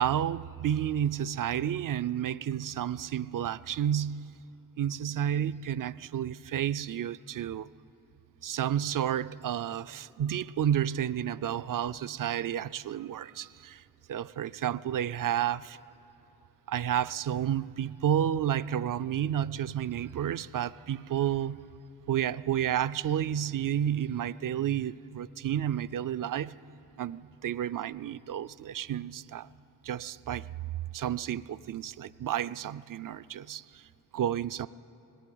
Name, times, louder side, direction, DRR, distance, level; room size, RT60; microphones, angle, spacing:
voice 1, 0.0-4.3 4.8-7.7 8.4-13.8 14.1-15.8 16.7-21.6 22.1-26.5 27.0-29.5 29.8-30.5 30.9-33.8 34.1-34.7, right 10 dB, 65° right, 0.5 m, -31 dB
20.0 x 16.5 x 9.3 m
cardioid pair, 65°, 34 cm